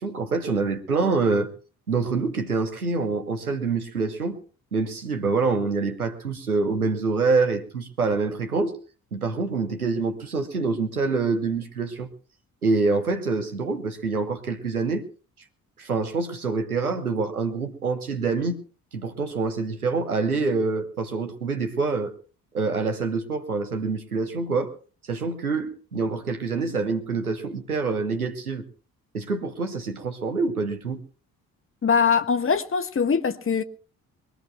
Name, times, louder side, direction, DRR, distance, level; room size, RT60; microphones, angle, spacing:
voice 1, 0.0-1.5 1.9-4.4 4.7-8.8 9.1-12.1 12.6-15.0 15.8-18.6 18.9-22.1 22.5-24.7 25.0-28.6 29.1-31.0, right 4 dB, 90° right, 1.1 m, -26 dB
voice 2, 31.8-33.6, left 6 dB, 30° left, 1.3 m, -22 dB
23.0 x 18.5 x 2.3 m
figure-of-eight pair, 40°, 43 cm